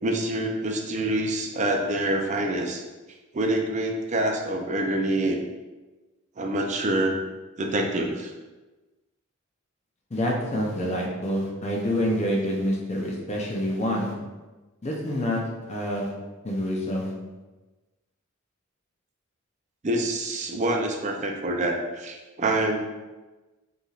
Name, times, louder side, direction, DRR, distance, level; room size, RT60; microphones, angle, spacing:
voice 1, 0.0-2.8 3.3-5.4 6.4-7.2 7.6-8.3 19.8-22.8, right 1 dB, 35° right, 2 dB, 0.5 m, -26 dB
voice 2, 10.1-14.1 14.8-15.4 15.7-16.1 16.4-17.1, equal, 30° left, -2 dB, 0.6 m, -27 dB
5.1 x 3.3 x 2.4 m, 1.2 s
head